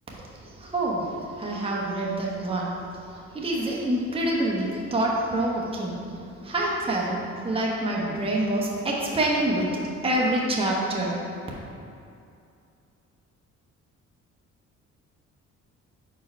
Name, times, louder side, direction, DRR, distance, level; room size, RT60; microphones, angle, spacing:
voice 1, 0.6-2.7 3.3-6.0 6.4-9.8 10.0-11.2, right 1 dB, 20° right, -4 dB, 1.0 m, -26 dB
4.6 x 4.5 x 5.4 m, 2.5 s
cardioid pair, 90°, 30 cm